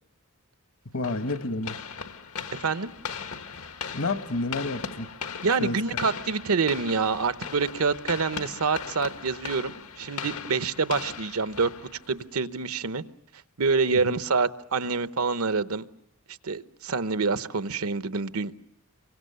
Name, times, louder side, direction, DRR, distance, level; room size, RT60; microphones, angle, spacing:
voice 1, 0.9-1.8 3.9-5.1 5.6-5.8 13.9-14.1, left 2 dB, 70° left, 9 dB, 1.4 m, -30 dB
sound 1, 1.0-12.3, left 6 dB, 85° left, 1.5 m, -38 dB
voice 2, 2.5-2.9 5.4-11.7 12.1-13.0 13.6-15.8 16.4-18.5, right 4 dB, 90° right, 12 dB, 0.9 m, -26 dB
28.5 x 24.0 x 6.8 m, 0.75 s
head